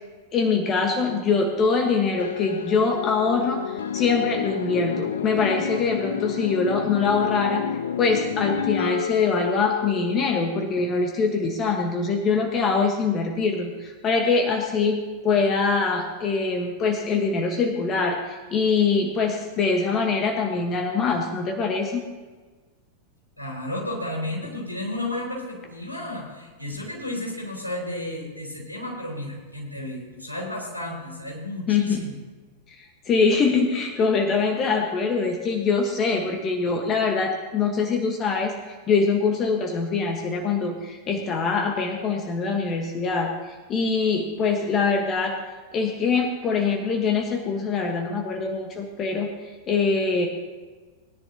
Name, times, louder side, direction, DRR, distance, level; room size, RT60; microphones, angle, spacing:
voice 1, 0.3-7.6 8.0-22.0 31.7-32.0 32.7-45.3 45.7-50.3, left 4 dB, 30° left, 3 dB, 1.3 m, -23 dB
sound 1, 2.2-10.6, left 8 dB, 65° left, 0.5 m, -30 dB
voice 2, 23.4-32.2, left 1 dB, 85° left, -3 dB, 4.3 m, -32 dB
20.0 x 10.5 x 2.9 m, 1.3 s
figure-of-eight pair, 90°, 0 cm